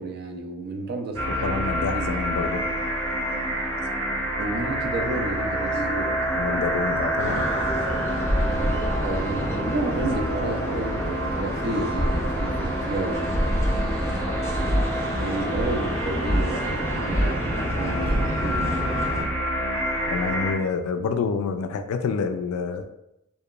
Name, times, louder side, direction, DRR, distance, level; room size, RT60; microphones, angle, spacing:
voice 1, 0.0-1.5 1.8-2.2 4.4-6.3 8.3-13.5 14.6-18.8, right 2 dB, 50° right, 2 dB, 0.4 m, -32 dB
sound 1, 1.1-20.5, right 1 dB, 65° right, 0.8 m, -28 dB
voice 2, 1.4-2.6 6.3-7.5 20.1-22.9, left 5 dB, 90° left, 10 dB, 0.3 m, -27 dB
sound 2, 7.2-19.2, equal, 10° left, 0.4 m, -29 dB
sound 3, 14.7-15.0 16.3-16.6 17.1-17.4 18.0-18.4, equal, 90° right, 1.1 m, -24 dB
2.8 x 2.2 x 2.3 m, 0.84 s
head